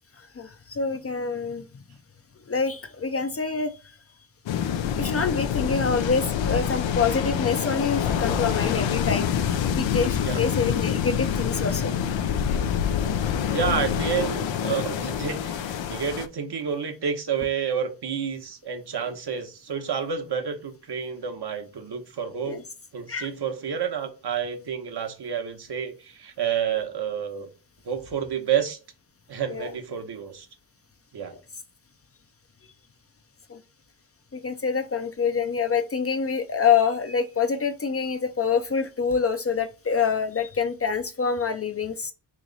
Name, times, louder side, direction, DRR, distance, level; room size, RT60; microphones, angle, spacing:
voice 1, 0.2-1.8 2.5-3.7 5.0-9.3 9.6-11.9 22.5-22.6 23.1-23.3 29.5-29.7 33.5-33.6 34.3-42.1, left 5 dB, 35° left, 0.5 m, -26 dB
sound 1, 4.5-16.3, left 8 dB, 80° left, 0.5 m, -26 dB
voice 2, 13.5-22.6 22.9-27.5 27.8-28.8 29.3-30.5 31.1-31.3, right 7 dB, 60° right, 0.9 m, -29 dB
3.1 x 2.9 x 3.8 m
cardioid pair, 70°, 44 cm